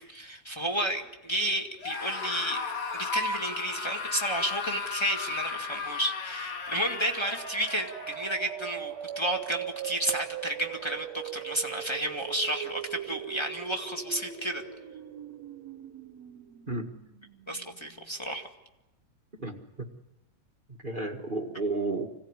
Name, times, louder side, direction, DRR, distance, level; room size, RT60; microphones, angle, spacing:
voice 1, 0.0-2.6 2.9-14.6 17.5-18.5, right 1 dB, 15° left, 3 dB, 1.2 m, -32 dB
Screaming, 1.8-8.3, left 4 dB, 80° left, 4.2 m, -35 dB
sound 1, 6.4-18.1, right 11 dB, 65° right, 1.9 m, -41 dB
voice 2, 19.4-19.9 20.8-22.1, right 3 dB, 30° right, 2 dB, 1.0 m, -32 dB
26.5 x 17.5 x 9.7 m, 0.95 s
omnidirectional pair, 3.8 m